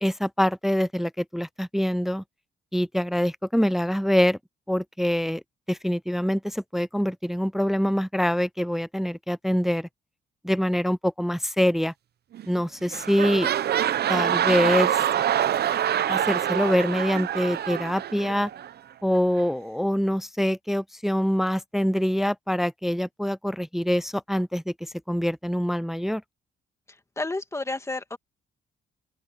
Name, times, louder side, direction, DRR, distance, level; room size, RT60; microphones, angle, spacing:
voice 1, 0.0-2.2 2.7-4.4 4.7-5.4 5.7-9.9 10.4-11.9 12.5-13.5 14.1-14.9 16.1-18.5 19.0-26.2, equal, ahead, 0.4 m, -25 dB
sound 1, 12.3-12.6 12.9-18.7 19.4-19.5, right 10 dB, 55° right, 0.7 m, -25 dB
voice 2, 27.2-28.2, left 2 dB, 15° left, 2.2 m, -30 dB
open air
cardioid pair, 90°, 20 cm